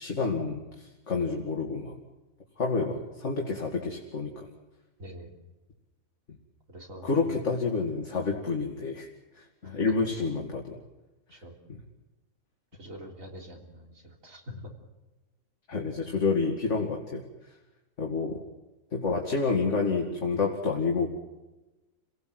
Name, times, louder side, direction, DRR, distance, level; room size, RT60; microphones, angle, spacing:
voice 1, 0.0-2.0 2.6-4.5 7.0-9.1 9.4-10.7 15.7-17.2 18.0-18.4 18.9-21.1, left 4 dB, 55° left, 1 dB, 2.7 m, -29 dB
voice 2, 5.0-5.4 6.7-7.1 11.3-11.5 12.8-13.9 14.2-14.4, right 1 dB, 65° right, 1 dB, 3.9 m, -45 dB
29.5 x 18.0 x 7.9 m, 1.1 s
omnidirectional pair, 1.5 m